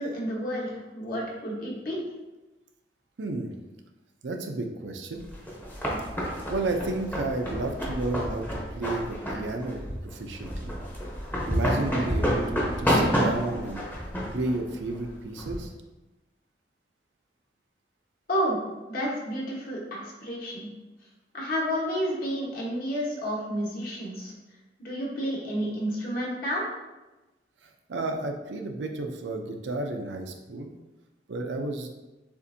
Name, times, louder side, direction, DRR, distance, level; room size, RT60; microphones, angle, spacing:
voice 1, 0.0-2.0 18.3-18.6 18.9-20.7 21.3-24.3 24.8-26.6, equal, 55° left, -4 dB, 1.2 m, -30 dB
voice 2, 3.2-3.6 4.2-5.2 6.5-10.7 11.5-13.9 14.3-15.7 27.6-30.7 31.3-31.9, right 2 dB, 90° right, 4 dB, 0.5 m, -32 dB
sound 1, 5.2-15.7, equal, 10° left, 0.7 m, -29 dB
7.0 x 2.5 x 2.7 m, 1.1 s
head